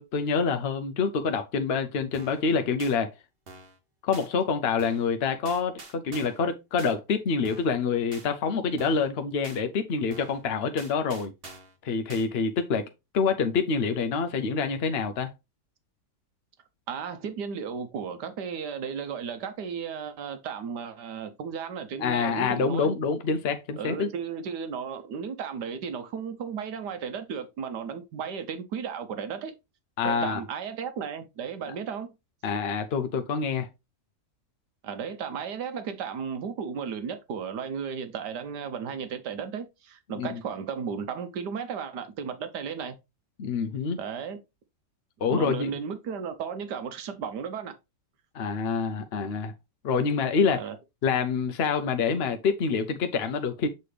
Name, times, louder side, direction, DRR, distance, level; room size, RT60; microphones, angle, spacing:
voice 1, 0.0-3.1 4.0-11.3 11.8-15.3 22.0-24.1 30.0-30.4 32.4-33.7 40.2-40.4 43.4-44.0 45.2-45.7 48.3-49.5 49.8-50.7 51.0-53.7, left 5 dB, 60° left, 0.6 m, -27 dB
sound 1, 2.1-2.4 2.8-3.0 3.5-3.8 4.1-4.3 4.8-5.1 5.5-6.4 6.8-6.9 7.4-7.8 8.1-8.3 8.8-9.1 9.4-9.6 10.1-10.4 10.8-11.8 12.1-12.3, right 3 dB, 35° right, 1.3 m, -46 dB
voice 2, 16.9-22.9 23.8-29.5 30.0-32.1 34.8-42.9 44.0-44.4 45.3-47.8 50.6-50.7, right 6 dB, 75° right, 1.4 m, -34 dB
8.0 x 4.2 x 3.3 m
omnidirectional pair, 1.8 m